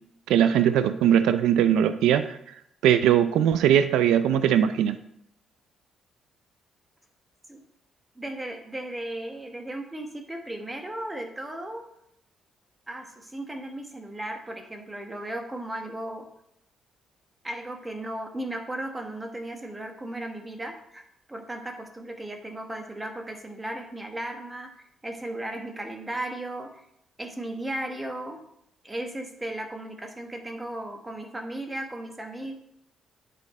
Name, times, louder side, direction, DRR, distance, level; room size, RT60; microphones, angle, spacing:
voice 1, 0.3-2.4 2.8-5.0, right 10 dB, 90° right, 11 dB, 0.4 m, -20 dB
voice 2, 8.2-11.8 12.9-16.2 17.4-21.0 21.3-24.7 25.0-26.8 27.2-28.4 28.8-32.6, right 1 dB, 15° right, 4 dB, 1.2 m, -36 dB
9.7 x 4.2 x 4.2 m, 0.76 s
cardioid pair, 90°, 0 cm